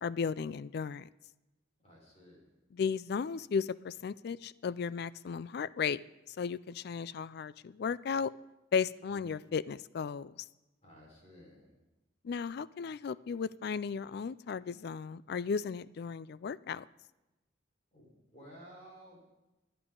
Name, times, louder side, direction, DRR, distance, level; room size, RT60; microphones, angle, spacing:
voice 1, 0.0-1.1 2.7-6.0 6.4-8.3 8.7-10.4 12.2-16.8, left 6 dB, 55° left, 19 dB, 0.3 m, -35 dB
voice 2, 1.8-2.4 9.1-9.5 10.8-11.7 17.9-19.2, equal, 35° left, -2 dB, 4.4 m, -55 dB
24.0 x 9.0 x 3.8 m, 1.0 s
head